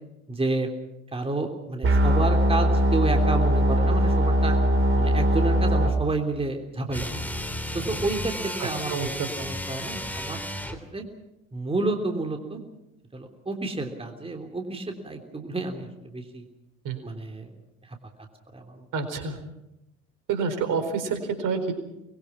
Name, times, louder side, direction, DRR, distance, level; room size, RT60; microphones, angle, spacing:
voice 1, 0.3-0.7 1.1-4.6 5.0-7.0 7.7-9.1 9.4-10.4 10.9-11.0 11.5-12.6 13.1-16.4 17.0-17.5 17.9-18.0 18.5-18.9, right 2 dB, 15° right, 4 dB, 3.4 m, -30 dB
sound 1, 1.8-5.9, right 1 dB, 30° right, 5.2 m, -21 dB
sound 2, 6.9-10.9, left 1 dB, 5° left, 3.2 m, -33 dB
voice 2, 8.6-9.3 16.8-17.0 18.9-19.4 20.3-21.7, right 5 dB, 55° right, 8 dB, 4.4 m, -28 dB
25.5 x 21.5 x 6.0 m, 0.88 s
hypercardioid pair, 65°, 38 cm